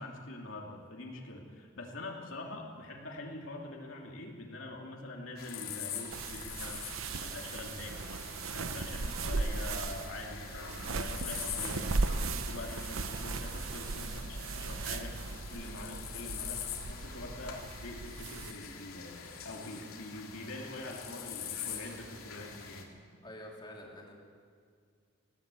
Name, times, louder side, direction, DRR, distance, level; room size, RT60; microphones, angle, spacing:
voice 1, 0.0-8.0 8.5-12.0 12.2-15.2 15.5-22.8, left 2 dB, 65° left, -1 dB, 2.7 m, -44 dB
sound 1, 5.4-22.8, left 8 dB, 85° left, 2.9 m, -44 dB
sound 2, 6.1-18.5, right 3 dB, 75° right, 0.9 m, -37 dB
voice 2, 23.2-24.1, left 1 dB, 20° left, -2 dB, 3.4 m, -47 dB
19.5 x 18.0 x 8.3 m, 2.1 s
head